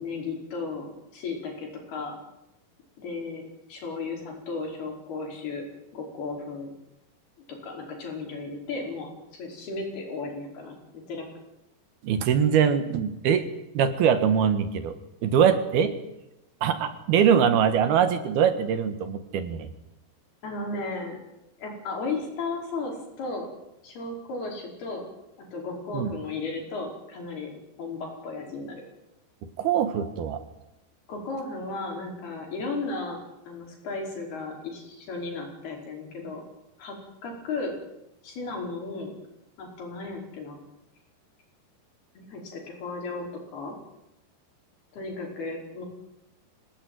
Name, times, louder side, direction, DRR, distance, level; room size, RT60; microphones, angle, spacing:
voice 1, 0.0-2.1 3.0-3.4 3.7-5.6 5.9-6.7 7.5-9.1 9.4-11.3 20.4-21.2 21.6-23.5 23.8-25.1 25.5-28.8 31.1-33.2 33.5-36.4 36.8-37.0 37.2-37.7 38.2-39.1 39.6-40.6 42.2-43.3 43.5-43.8 44.9-45.8, left 3 dB, 65° left, 1 dB, 7.1 m, -35 dB
voice 2, 12.0-13.5 13.7-14.9 15.2-15.9 16.6-19.7 25.9-26.1 29.6-30.4, right 8 dB, 70° right, 10 dB, 3.3 m, -22 dB
25.5 x 18.0 x 9.5 m, 0.89 s
omnidirectional pair, 4.9 m